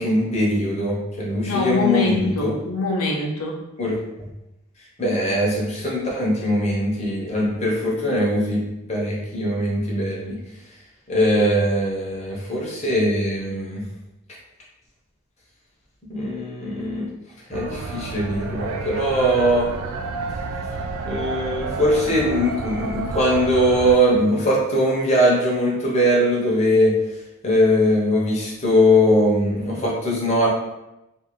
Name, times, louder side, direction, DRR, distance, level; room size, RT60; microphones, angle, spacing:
voice 1, 0.0-2.5 3.8-4.3 5.0-10.4 11.1-13.8 16.0-17.1 17.5-19.7 21.1-27.0 27.4-30.5, equal, 30° left, -5 dB, 0.7 m, -21 dB
voice 2, 1.4-3.6, left 2 dB, 85° left, 0 dB, 0.5 m, -24 dB
sound 1, 17.5-23.9, right 4 dB, 85° right, 0.3 m, -30 dB
2.5 x 2.4 x 2.9 m, 0.92 s
head